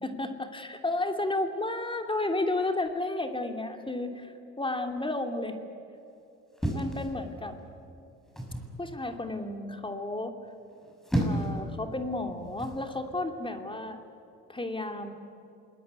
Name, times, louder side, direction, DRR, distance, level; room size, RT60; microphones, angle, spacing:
voice 1, 0.0-5.6 6.7-7.6 8.8-10.3 11.2-14.0 14.5-15.1, left 2 dB, 15° left, 5 dB, 2.7 m, -32 dB
sound 1, 6.6-7.6 8.4-8.8 10.7-11.6 12.6-12.9, right 1 dB, ahead, 6.0 m, -31 dB
28.0 x 20.0 x 9.5 m, 2.7 s
cardioid pair, 90°, 30 cm